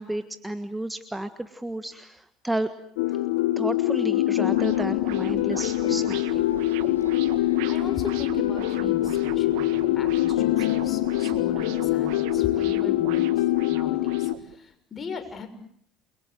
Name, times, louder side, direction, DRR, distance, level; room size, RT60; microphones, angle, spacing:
voice 1, 0.0-2.7 3.1-3.2 3.6-6.4, right 1 dB, 10° right, 10 dB, 1.6 m, -32 dB
sound 1, 3.0-14.3, left 15 dB, 75° left, 1.1 m, -24 dB
sound 2, 4.5-14.6, right 14 dB, 70° right, 1.8 m, -40 dB
sound 3, 5.5-12.1, left 5 dB, 90° left, 3.4 m, -48 dB
voice 2, 7.3-13.4 13.7-15.5, left 5 dB, 30° left, 7 dB, 6.5 m, -38 dB
29.0 x 24.0 x 8.0 m, 0.64 s
hypercardioid pair, 70°, 0 cm